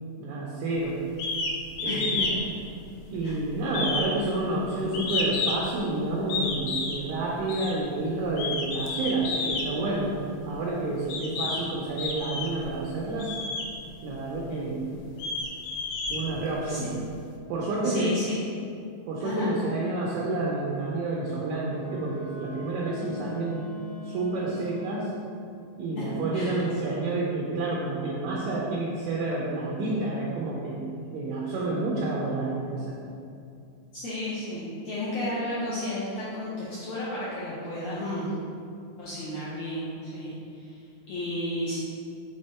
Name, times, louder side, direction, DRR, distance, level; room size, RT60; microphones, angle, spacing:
voice 1, 0.2-1.0 1.8-2.3 3.1-10.1 10.4-13.3 14.0-14.9 16.1-16.9 17.5-18.2 19.1-23.7 24.0-25.1 25.8-30.9 31.1-32.9, right 2 dB, 80° right, -4 dB, 1.8 m, -29 dB
sound 1, 1.2-1.5 1.8-2.4 2.7-3.3 3.7-5.7 6.3-7.0 7.5-7.7 8.3-9.7 10.5-10.6 11.1-11.6 12.0-12.7 13.2-13.7 14.3-14.4 14.9-16.7, left 3 dB, 90° left, 2.4 m, -30 dB
voice 2, 1.8-2.4 3.2-3.3 16.7-16.8 17.8-18.4 19.2-19.5 26.0-26.1 26.3-26.6 33.9-38.3 39.0-41.8, left 1 dB, 75° left, -8 dB, 1.6 m, -33 dB
Wind instrument woodwind instrument, 21.6-25.3, left 3 dB, 55° left, 2.2 m, -42 dB
6.3 x 3.5 x 4.3 m, 2.5 s
omnidirectional pair, 4.0 m